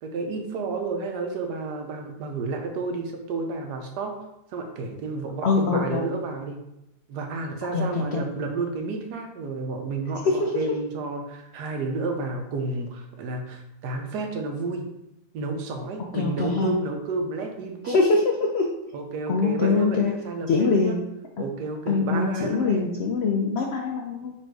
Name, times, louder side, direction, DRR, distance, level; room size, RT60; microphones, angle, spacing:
voice 1, 0.0-4.2 4.5-6.6 7.1-14.9 15.3-18.0 18.9-21.0 21.4-22.9, right 3 dB, 90° right, 4 dB, 1.3 m, -31 dB
voice 2, 5.4-6.1 7.7-8.2 10.3-10.6 16.1-16.7 17.8-18.7 19.3-20.1 20.5-21.0 21.9-24.3, left 4 dB, 85° left, 1 dB, 0.5 m, -23 dB
4.4 x 2.6 x 4.6 m, 0.87 s
omnidirectional pair, 1.7 m